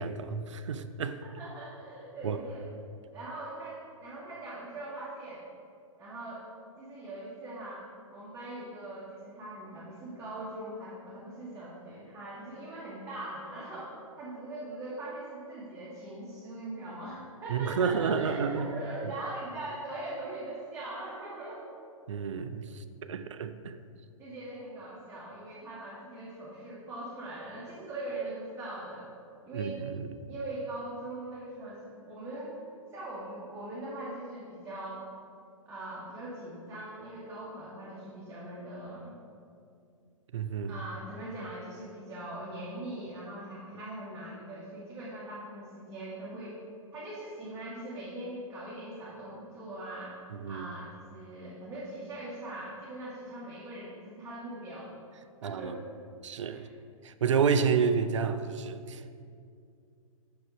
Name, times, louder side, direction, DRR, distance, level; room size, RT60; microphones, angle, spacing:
voice 1, 0.0-1.2 2.2-2.4 17.5-18.7 19.0-19.1 22.1-23.8 29.5-30.2 40.3-40.8 50.3-50.7 55.4-55.7 56.2-56.6 57.0-59.1, right 6 dB, 60° right, 0.5 m, -30 dB
voice 2, 1.2-2.6 3.1-5.4 6.0-6.4 6.8-7.8 8.1-21.6 24.2-29.1 29.4-29.8 30.3-32.6 32.9-35.0 35.6-39.2 40.7-46.6 46.9-50.2 50.4-54.9 55.4-55.8 56.5-56.6, right 1 dB, 15° right, 1.3 m, -41 dB
6.0 x 5.0 x 5.9 m
figure-of-eight pair, 115°, 18 cm